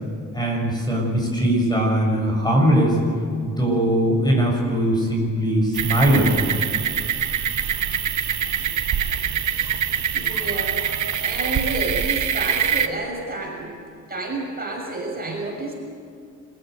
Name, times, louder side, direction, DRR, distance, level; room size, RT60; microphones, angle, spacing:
voice 1, 0.3-3.0 3.4-6.5, right 1 dB, 10° left, -1 dB, 7.3 m, -20 dB
sound 1, 5.7-12.9, right 8 dB, 60° right, 1.3 m, -24 dB
voice 2, 10.1-13.8 14.1-15.7, right 2 dB, 30° right, -1 dB, 6.6 m, -30 dB
26.0 x 16.0 x 8.3 m, 2.4 s
cardioid pair, 110°, 33 cm